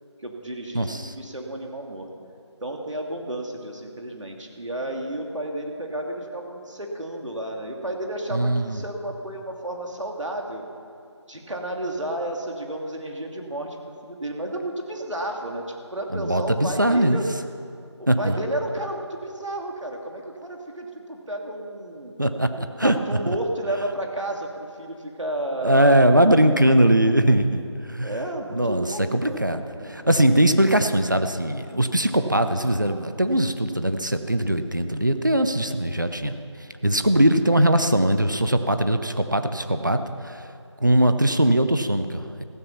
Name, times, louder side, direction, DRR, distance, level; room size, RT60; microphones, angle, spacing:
voice 1, 0.2-2.1 2.6-10.7 11.3-13.8 14.0-17.2 18.0-22.1 22.5-26.0 28.0-30.1, right 1 dB, 80° right, 1 dB, 2.6 m, -32 dB
voice 2, 0.7-1.1 8.3-8.8 16.1-17.2 18.1-18.4 22.2-22.5 22.8-23.0 23.3-23.4 25.6-27.6 27.9-28.2 28.5-29.6 29.9-36.4 36.8-40.4 40.8-42.4, right 1 dB, 40° right, 8 dB, 0.7 m, -20 dB
15.0 x 13.0 x 5.8 m, 2.4 s
figure-of-eight pair, 180°, 15 cm